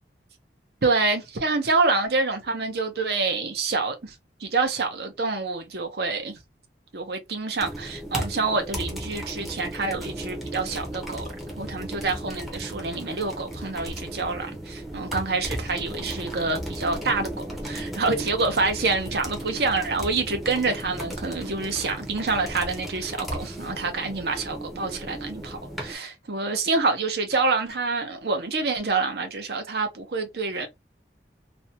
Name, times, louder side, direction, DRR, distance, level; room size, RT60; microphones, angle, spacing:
voice 1, 0.8-4.1 4.4-6.4 6.9-11.3 11.6-30.7, right 3 dB, 65° right, 0.7 m, -27 dB
sound 1, 7.6-25.9, right 1 dB, ahead, 0.6 m, -35 dB
2.5 x 2.2 x 2.7 m
head